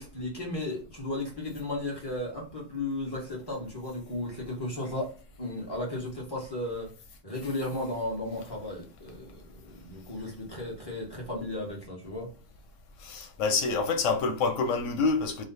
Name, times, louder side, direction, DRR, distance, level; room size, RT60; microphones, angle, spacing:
voice 1, 0.0-6.9 7.2-12.3, left 1 dB, 20° left, 1.2 m, -35 dB
voice 2, 13.0-15.4, left 4 dB, 85° left, 1.0 m, -27 dB
3.2 x 2.1 x 4.0 m
omnidirectional pair, 1.3 m